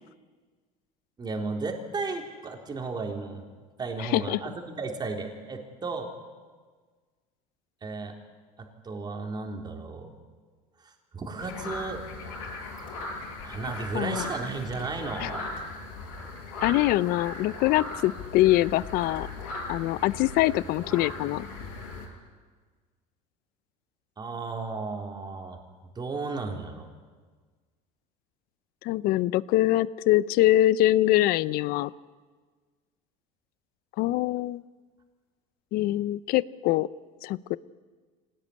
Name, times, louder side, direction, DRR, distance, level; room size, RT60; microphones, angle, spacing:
voice 1, 1.2-3.4 3.8-6.1 7.8-8.1 8.6-10.1 10.8-12.0 13.4-15.4 24.2-25.6 26.0-26.9, right 4 dB, 25° right, 2 dB, 3.8 m, -34 dB
voice 2, 4.0-4.4 13.9-14.3 15.2-15.3 16.6-19.3 19.7-21.4 28.8-31.9 34.0-34.6 35.7-36.9 37.2-37.6, left 15 dB, 65° left, 18 dB, 0.7 m, -24 dB
sound 1, 11.4-22.1, left 2 dB, 90° left, 6.8 m, -38 dB
24.5 x 18.5 x 9.9 m, 1.5 s
supercardioid pair, 115°, 17 cm